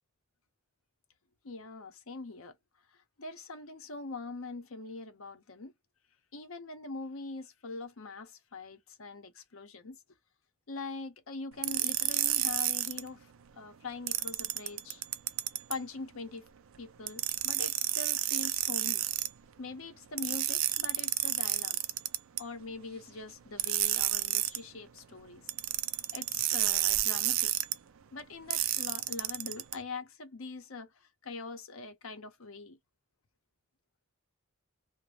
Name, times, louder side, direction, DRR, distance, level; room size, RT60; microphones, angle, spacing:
voice 1, 1.4-2.5 3.2-5.7 6.3-10.0 10.7-13.3 13.6-15.0 15.7-16.4 16.8-19.0 19.6-21.8 22.4-25.5 26.1-27.5 28.1-30.9 31.2-32.8, left 3 dB, 75° left, 0.8 m, -43 dB
sound 1, 11.6-13.0 14.1-15.8 17.1-19.3 20.2-22.4 23.6-24.6 25.5-27.7 28.5-29.7, right 14 dB, 70° right, 0.4 m, -30 dB
2.6 x 2.2 x 3.2 m
head